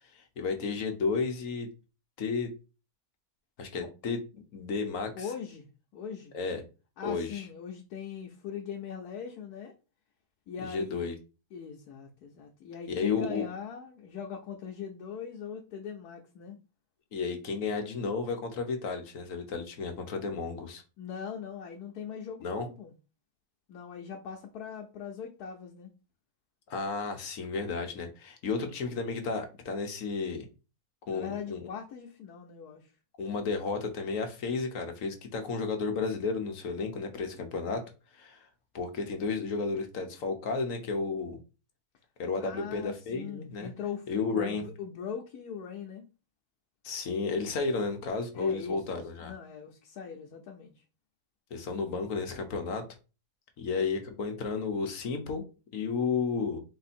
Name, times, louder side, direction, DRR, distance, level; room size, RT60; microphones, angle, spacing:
voice 1, 0.1-1.7 2.2-2.5 3.6-5.3 6.3-6.6 7.0-7.5 10.6-11.1 12.9-13.5 17.1-20.8 22.4-22.7 26.7-30.5 31.1-31.7 33.2-37.8 38.1-38.4 38.7-41.4 42.2-43.7 44.1-44.7 46.8-49.3 51.5-52.8 53.6-55.4 55.7-56.6, left 4 dB, 65° left, 5 dB, 1.2 m, -32 dB
voice 2, 5.1-6.3 7.0-9.7 10.5-11.1 11.5-16.6 21.0-22.9 23.7-25.9 31.1-32.9 42.4-46.1 48.3-50.8, left 7 dB, 90° left, 1 dB, 1.2 m, -41 dB
4.3 x 2.7 x 4.2 m, 0.32 s
omnidirectional pair, 1.6 m